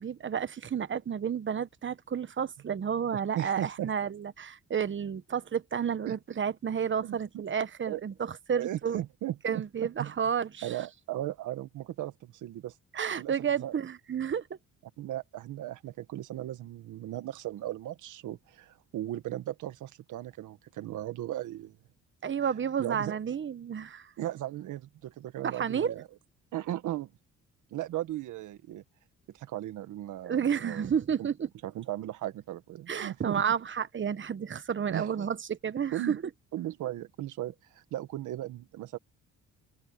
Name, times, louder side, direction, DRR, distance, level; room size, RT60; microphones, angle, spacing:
voice 1, 0.0-9.0 9.4-10.9 12.9-14.4 22.2-24.1 25.4-26.0 30.2-31.5 32.9-36.1, right 7 dB, 40° right, 1.1 m, -31 dB
voice 2, 3.1-3.9 6.1-6.2 7.0-7.2 7.9-8.0 8.6-9.4 10.0-10.1 10.6-12.7 13.2-13.7 15.0-21.8 22.8-23.1 24.2-26.1 26.5-27.1 27.7-28.8 29.3-30.9 31.2-31.3 31.6-33.4 34.9-35.1 35.9-36.2 36.5-39.0, right 13 dB, 80° right, 1.7 m, -37 dB
open air
cardioid pair, 90°, 30 cm